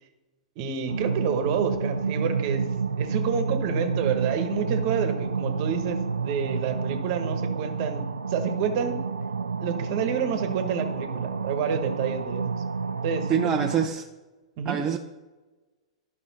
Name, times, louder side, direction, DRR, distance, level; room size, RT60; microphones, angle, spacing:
voice 1, 0.6-2.6 3.0-9.0 9.6-12.6 13.0-13.4 14.6-14.8, right 7 dB, 45° right, 7 dB, 1.2 m, -29 dB
sound 1, 0.9-13.9, right 5 dB, 80° right, 0.4 m, -29 dB
voice 2, 13.3-14.0 14.7-15.0, right 7 dB, 20° right, 3 dB, 0.5 m, -25 dB
12.0 x 5.4 x 4.1 m, 1.2 s
figure-of-eight pair, 105°, 3 cm